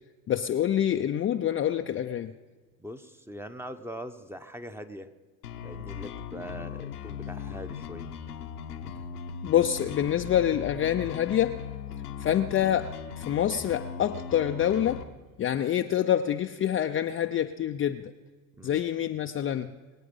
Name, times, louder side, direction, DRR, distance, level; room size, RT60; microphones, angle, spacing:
voice 1, 0.3-2.3 9.4-11.6 12.2-15.0 15.4-18.1 18.6-19.7, left 10 dB, 30° left, 6 dB, 0.6 m, -26 dB
voice 2, 2.8-5.1 5.6-8.1 18.6-18.9, equal, 5° right, 9 dB, 1.0 m, -42 dB
sound 1, 5.4-15.0, left 8 dB, 85° left, 1.1 m, -39 dB
23.0 x 8.5 x 5.4 m, 1.3 s
hypercardioid pair, 70°, 44 cm